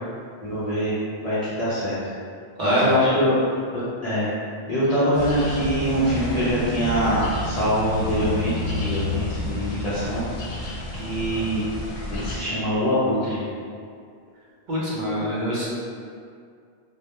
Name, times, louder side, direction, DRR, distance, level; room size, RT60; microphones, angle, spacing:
voice 1, 0.4-2.0 2.6-3.4 3.7-4.3 4.7-10.2 10.9-11.7 12.1-13.4, equal, 50° left, -10 dB, 0.5 m, -24 dB
sound 1, 5.1-12.4, left 2 dB, 80° left, 0.8 m, -30 dB
voice 2, 14.7-15.7, equal, 50° right, -7 dB, 0.7 m, -24 dB
2.1 x 2.1 x 2.8 m, 2.2 s
omnidirectional pair, 1.1 m